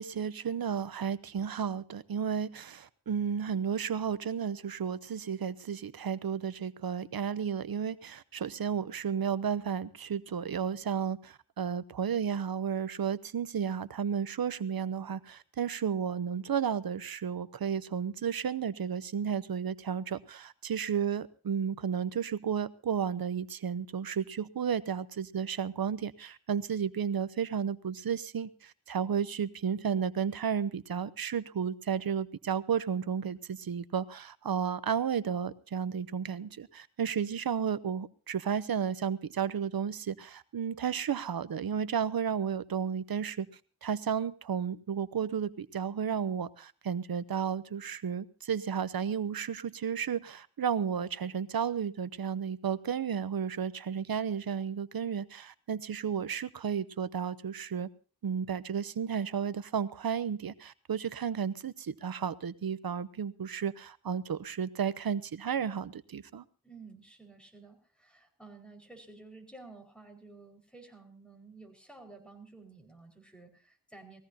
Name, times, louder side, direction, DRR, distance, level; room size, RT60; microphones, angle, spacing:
voice 1, 0.0-43.5 43.8-57.9 58.2-66.4, right 7 dB, 70° right, 15 dB, 0.8 m, -33 dB
voice 2, 66.6-74.2, right 3 dB, 5° left, 2 dB, 5.0 m, -52 dB
21.0 x 15.5 x 2.8 m, 0.39 s
wide cardioid pair, 60°, 37 cm